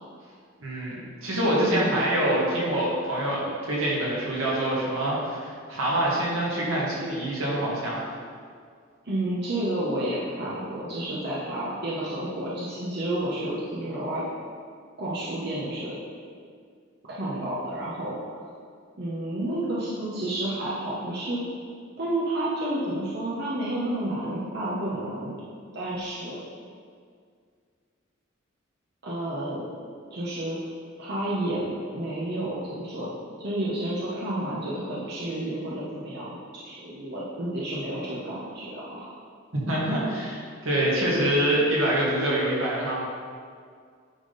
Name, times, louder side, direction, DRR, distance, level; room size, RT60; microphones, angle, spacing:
voice 1, 0.6-3.4 3.7-8.0 39.5-43.0, right 1 dB, 85° right, -5 dB, 1.8 m, -25 dB
voice 2, 9.0-14.2 15.0-16.0 17.1-18.4 19.0-21.4 22.0-25.3 25.7-26.4 29.0-29.7 30.1-30.7 31.0-33.1 33.4-36.4 36.6-39.1, right 1 dB, 55° right, -7 dB, 0.9 m, -30 dB
9.8 x 3.6 x 4.0 m, 2.1 s
head